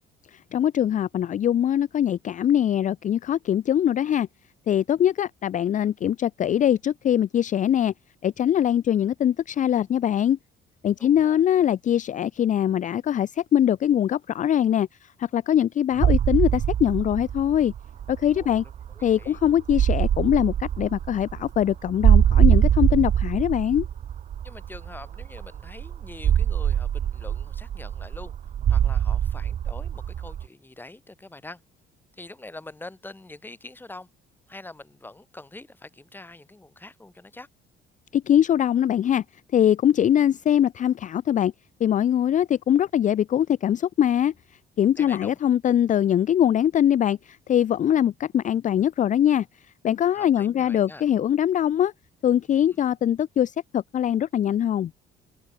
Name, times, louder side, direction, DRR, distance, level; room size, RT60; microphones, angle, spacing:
voice 1, 0.3-4.3 4.7-7.9 8.2-10.4 10.8-17.7 18.1-18.6 19.0-23.9 38.1-39.2 39.5-41.5 41.8-44.3 44.8-49.5 49.8-51.9 52.2-54.9, left 10 dB, 40° left, 0.5 m, -22 dB
voice 2, 11.0-11.4 18.4-19.4 24.4-28.3 28.7-31.6 32.1-34.1 34.5-37.5 45.0-45.4 50.1-51.1 52.7-52.8, left 2 dB, 10° left, 2.6 m, -44 dB
sound 1, 16.0-30.4, right 9 dB, 35° right, 0.5 m, -23 dB
cardioid pair, 155°, 21 cm